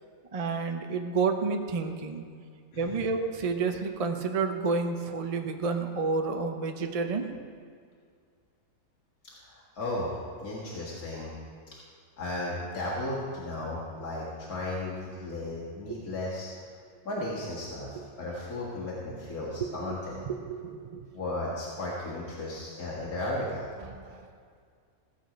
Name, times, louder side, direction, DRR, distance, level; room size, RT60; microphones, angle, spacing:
voice 1, 0.3-2.2 2.8-7.3 15.9-16.0 19.6-19.7 20.3-21.0 23.9-24.0, right 4 dB, 40° right, 5 dB, 0.5 m, -30 dB
voice 2, 2.7-3.1 9.4-10.1 10.4-11.3 12.2-16.5 17.1-20.3 21.1-23.7, left 1 dB, 80° left, -6 dB, 2.2 m, -35 dB
15.5 x 8.0 x 5.1 m, 2.1 s
omnidirectional pair, 1.5 m